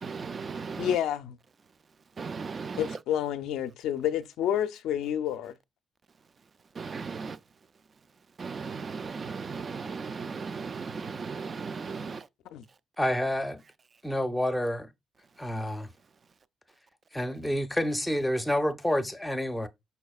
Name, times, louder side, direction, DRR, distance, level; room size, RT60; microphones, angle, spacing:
voice 1, 0.0-0.9 2.2-3.0 6.8-7.4 8.4-12.3, right 5 dB, 40° right, 0.3 m, -36 dB
voice 2, 0.8-1.4 2.8-5.5 12.5-12.6, left 10 dB, 85° left, 0.4 m, -29 dB
voice 3, 13.0-13.6 14.0-14.9 15.4-15.9 17.1-19.7, equal, 5° left, 0.6 m, -28 dB
5.5 x 4.1 x 2.3 m
cardioid pair, 90°, 0 cm